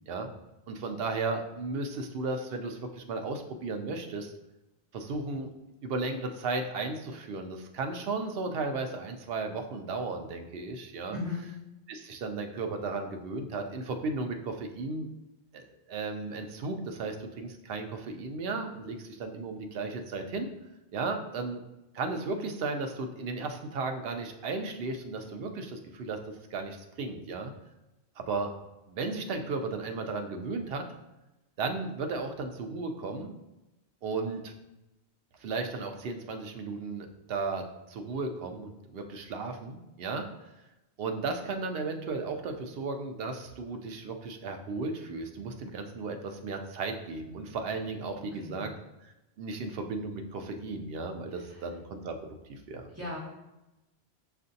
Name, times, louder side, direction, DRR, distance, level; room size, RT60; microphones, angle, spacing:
voice 1, 0.7-4.3 4.9-5.5 5.8-11.2 11.9-15.1 15.5-20.5 20.9-21.6 21.9-26.2 26.5-27.5 28.2-28.5 28.9-30.8 31.6-33.3 34.0-34.5 35.4-40.3 41.0-48.7 49.4-52.2 52.5-52.9, right 3 dB, 70° right, 5 dB, 0.7 m, -35 dB
voice 2, 11.1-11.4 48.2-48.7 51.3-51.6 52.9-53.2, left 2 dB, 15° right, -7 dB, 1.2 m, -38 dB
6.4 x 2.5 x 2.6 m, 0.97 s
omnidirectional pair, 1.1 m